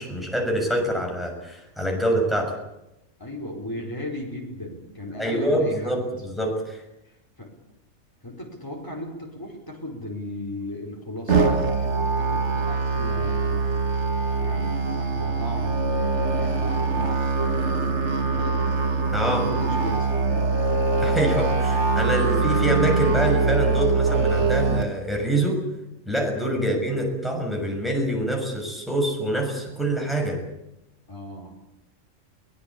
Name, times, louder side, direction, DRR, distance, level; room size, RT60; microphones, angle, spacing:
voice 1, 0.0-2.6 5.2-6.8 19.1-19.4 21.0-25.6 26.1-30.4, right 1 dB, ahead, 0 dB, 6.5 m, -25 dB
voice 2, 3.2-6.0 7.0-7.5 8.2-11.4 11.8-14.1 14.4-18.7 19.4-20.2 26.6-26.9 31.1-31.6, left 1 dB, 15° left, -1 dB, 5.0 m, -37 dB
Musical instrument, 11.3-24.8, right 4 dB, 60° right, 2.3 m, -23 dB
23.0 x 19.5 x 8.6 m, 0.91 s
omnidirectional pair, 1.3 m